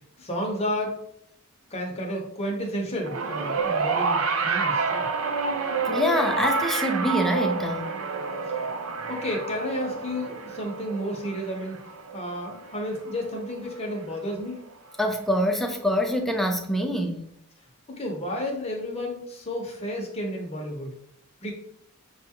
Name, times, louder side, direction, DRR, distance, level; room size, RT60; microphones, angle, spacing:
voice 1, 0.2-1.0 1.7-5.1 8.5-8.7 9.1-11.8 12.1-14.6 17.9-20.9 21.4-21.5, equal, 30° left, 0 dB, 0.9 m, -31 dB
sound 1, 3.0-13.5 14.5-14.6, right 4 dB, 70° right, 0.5 m, -28 dB
voice 2, 5.9-7.8 15.0-17.2, equal, ahead, 3 dB, 0.4 m, -25 dB
6.2 x 2.4 x 2.9 m, 0.73 s
head